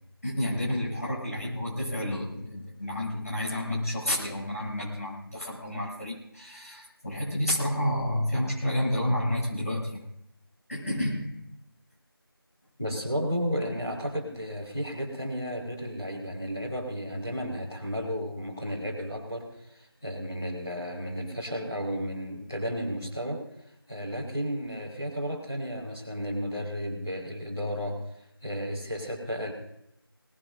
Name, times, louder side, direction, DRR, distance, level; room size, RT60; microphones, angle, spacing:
voice 1, 0.2-10.0 10.7-11.5, left 1 dB, 35° left, -5 dB, 7.4 m, -30 dB
voice 2, 12.8-23.4 23.9-28.0 28.4-29.5, equal, 5° left, -11 dB, 1.7 m, -33 dB
22.5 x 19.5 x 2.7 m, 0.80 s
figure-of-eight pair, 175°, 13 cm